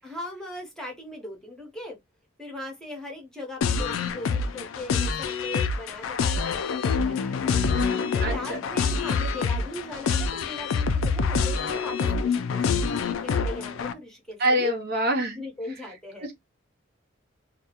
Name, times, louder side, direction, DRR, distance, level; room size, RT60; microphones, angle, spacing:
voice 1, 0.0-2.0 2.4-7.8 8.1-14.7 15.3-16.3, left 1 dB, 5° left, 0.8 m, -39 dB
sound 1, 3.6-13.9, left 5 dB, 90° left, 0.3 m, -26 dB
voice 2, 8.2-8.6 14.4-15.4 16.2-16.3, right 1 dB, 55° right, 0.6 m, -25 dB
2.3 x 2.0 x 2.8 m
head